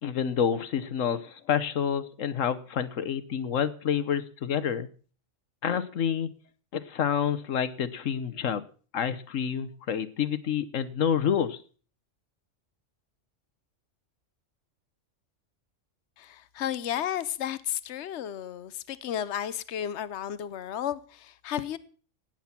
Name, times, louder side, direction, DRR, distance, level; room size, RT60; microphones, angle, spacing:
voice 1, 0.0-4.9 5.6-6.3 6.7-8.6 8.9-11.6, left 8 dB, 85° left, 1.4 m, -28 dB
voice 2, 16.2-21.8, left 10 dB, 65° left, 1.1 m, -33 dB
17.0 x 9.1 x 5.9 m
omnidirectional pair, 1.3 m